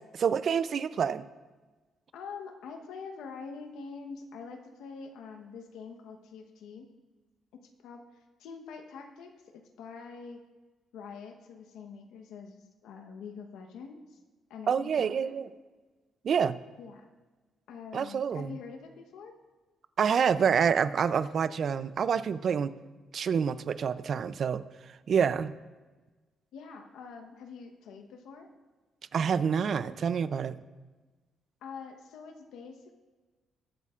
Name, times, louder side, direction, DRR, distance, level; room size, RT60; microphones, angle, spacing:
voice 1, 0.1-1.3 14.7-15.5 16.2-16.6 17.9-18.6 20.0-22.7 23.1-24.6 25.1-25.5 29.1-30.6, right 7 dB, 55° right, 14 dB, 0.5 m, -27 dB
voice 2, 2.1-6.9 7.5-8.0 8.4-10.4 10.9-14.2 14.5-15.4 16.8-17.1 17.7-19.4 26.5-28.5 31.6-32.9, left 5 dB, 85° left, 4 dB, 1.0 m, -45 dB
21.0 x 8.2 x 2.5 m, 1.3 s
cardioid pair, 90°, 0 cm